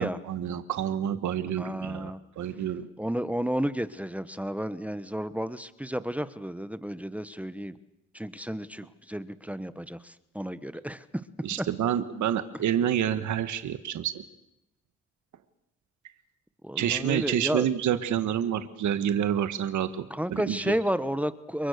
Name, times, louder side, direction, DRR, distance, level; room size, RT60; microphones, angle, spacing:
voice 1, 0.0-2.9 11.4-14.2 16.8-20.7, right 10 dB, 70° right, 10 dB, 1.7 m, -28 dB
voice 2, 1.6-2.2 3.0-7.8 8.1-11.0 16.6-17.7 20.1-21.7, equal, 5° right, 13 dB, 1.2 m, -32 dB
29.5 x 23.5 x 6.7 m, 0.88 s
cardioid pair, 90°, 30 cm